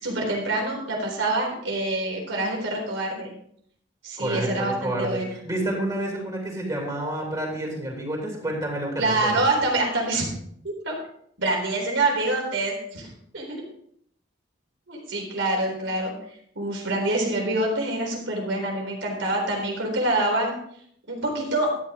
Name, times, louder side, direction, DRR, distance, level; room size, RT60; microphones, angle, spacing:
voice 1, 0.0-3.3 4.0-5.4 9.0-10.3 10.6-10.9 11.4-13.1 13.3-13.6 14.9-16.1 16.6-20.5 21.1-21.7, right 2 dB, 85° right, 0 dB, 3.9 m, -26 dB
voice 2, 4.2-9.4, right 1 dB, 20° right, -1 dB, 3.0 m, -29 dB
13.0 x 9.2 x 3.7 m, 0.67 s
head